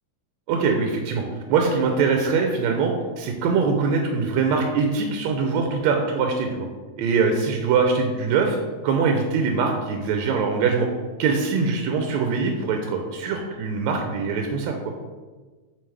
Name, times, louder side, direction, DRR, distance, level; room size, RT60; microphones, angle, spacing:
voice 1, 0.5-6.7 7.0-8.6 8.8-10.9 11.2-14.8, right 5 dB, 80° right, 3 dB, 1.9 m, -23 dB
7.8 x 4.0 x 3.3 m, 1.3 s
omnidirectional pair, 3.3 m